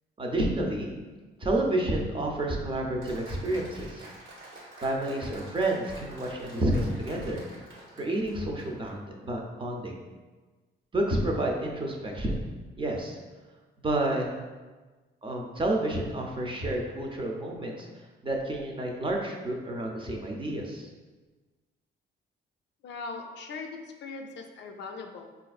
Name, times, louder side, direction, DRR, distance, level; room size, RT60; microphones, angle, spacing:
voice 1, 0.2-0.9 1.4-4.0 4.8-7.4 7.9-10.0 10.9-12.4 12.8-13.2 13.8-14.2 15.2-17.9 18.2-20.9, right 1 dB, 25° right, 0 dB, 0.5 m, -29 dB
Applause, 3.0-8.9, right 1 dB, 85° right, 1.2 m, -48 dB
voice 2, 22.8-25.3, left 4 dB, 65° left, 3 dB, 0.4 m, -40 dB
4.1 x 2.5 x 2.3 m, 1.3 s
cardioid pair, 90°, 20 cm